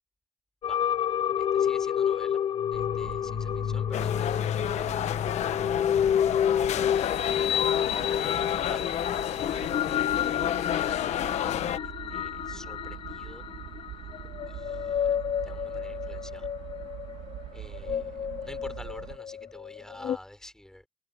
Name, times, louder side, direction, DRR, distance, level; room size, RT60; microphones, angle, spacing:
sound 1, 0.6-20.2, left 9 dB, 40° left, 0.6 m, -30 dB
voice 1, 1.4-2.4 2.7-5.5 8.1-9.1 10.7-11.3 11.8-13.4 14.5-15.2 15.4-16.5 17.5-20.9, left 1 dB, 5° left, 4.1 m, -49 dB
sound 2, 2.7-19.2, right 13 dB, 85° right, 2.6 m, -43 dB
sound 3, 3.9-11.8, left 11 dB, 60° left, 1.3 m, -30 dB
cardioid pair, 140°, 13 cm